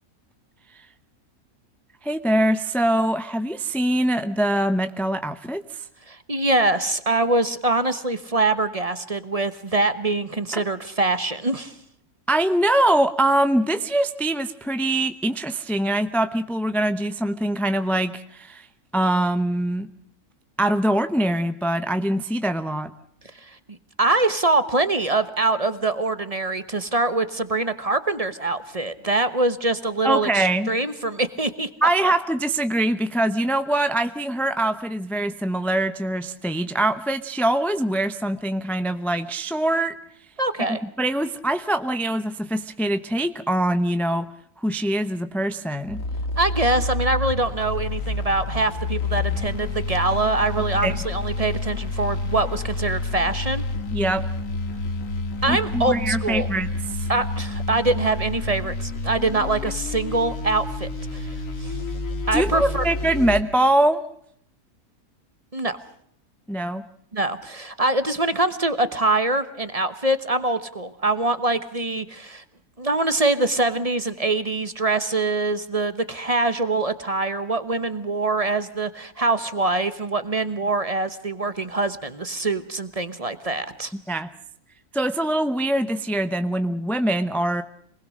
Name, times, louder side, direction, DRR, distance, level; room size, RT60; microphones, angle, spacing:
voice 1, 2.0-5.9 10.5-10.6 12.3-18.7 18.9-19.9 20.6-22.9 30.0-30.7 31.8-40.0 40.7-44.3 44.6-46.0 50.8-50.9 53.9-54.2 55.5-57.1 62.3-64.0 66.5-66.8 84.1-84.3 84.9-87.6, right 1 dB, ahead, 9 dB, 0.5 m, -23 dB
voice 2, 6.1-11.7 23.4-23.6 24.0-31.7 32.0-32.1 40.4-40.8 46.4-53.6 55.4-56.5 57.1-61.3 61.6-61.7 62.3-62.9 65.5-65.8 67.1-72.4 72.8-83.9, right 2 dB, 25° right, 12 dB, 1.0 m, -24 dB
sound 1, 45.9-63.4, left 2 dB, 60° left, 2.3 m, -29 dB
26.5 x 20.0 x 6.5 m, 0.69 s
omnidirectional pair, 1.6 m